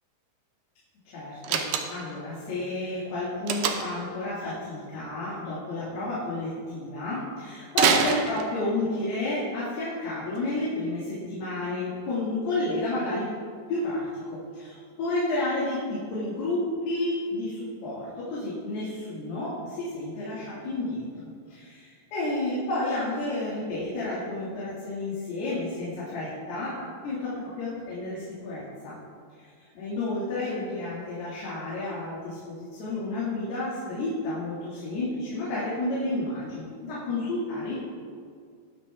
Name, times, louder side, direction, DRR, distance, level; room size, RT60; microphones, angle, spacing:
voice 1, 1.1-13.3 13.7-21.1 21.5-29.0 29.4-29.5 29.8-37.8, left 2 dB, 90° left, -8 dB, 4.3 m, -31 dB
Slam, 1.4-2.2 3.5-4.1 7.7-8.8, right 7 dB, 75° right, 2.2 m, -25 dB
20.0 x 7.2 x 3.5 m, 2.1 s
omnidirectional pair, 4.5 m